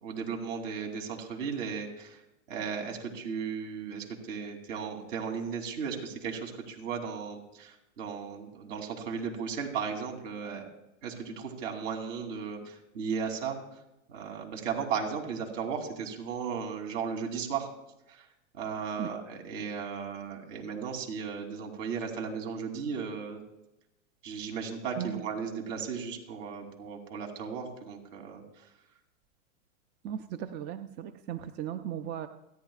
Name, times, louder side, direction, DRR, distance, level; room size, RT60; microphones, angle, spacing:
voice 1, 0.0-2.2 2.5-10.7 11.0-13.6 14.1-17.7 18.1-18.3 18.5-23.4 24.2-28.4, right 6 dB, 65° right, 2 dB, 3.2 m, -36 dB
voice 2, 30.0-32.3, right 10 dB, 25° right, 11 dB, 0.5 m, -37 dB
29.5 x 10.5 x 2.4 m, 0.89 s
hypercardioid pair, 120°, 40 cm